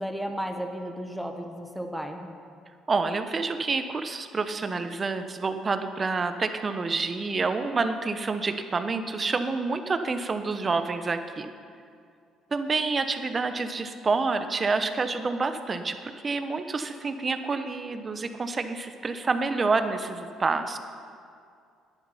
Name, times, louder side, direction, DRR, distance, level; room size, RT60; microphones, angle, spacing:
voice 1, 0.0-2.4, equal, ahead, 4 dB, 1.1 m, -34 dB
voice 2, 2.9-11.5 12.5-20.8, right 4 dB, 30° right, 9 dB, 0.9 m, -28 dB
11.0 x 10.0 x 5.6 m, 2.3 s
cardioid pair, 90°, 0 cm